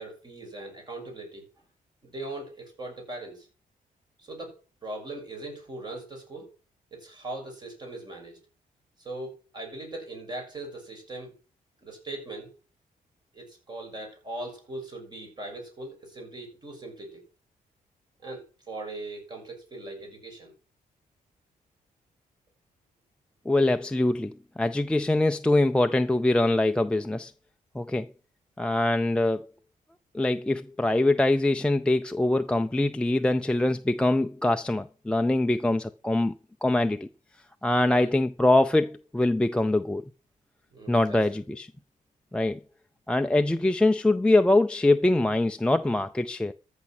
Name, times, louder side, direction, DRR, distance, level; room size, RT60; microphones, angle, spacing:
voice 1, 0.0-1.5 2.0-3.5 4.2-6.5 6.9-8.4 9.0-11.3 11.8-12.6 13.3-17.2 18.2-20.5 37.8-38.1 40.7-41.2, right 2 dB, 30° right, 6.7 m, -40 dB
voice 2, 23.5-27.3 27.7-28.1 28.6-29.4 30.1-36.3 36.6-37.1 37.6-40.0 40.9-41.7 42.3-42.6 43.1-46.5, left 2 dB, 5° left, 0.5 m, -23 dB
14.0 x 6.0 x 6.0 m
cardioid pair, 125°, 14 cm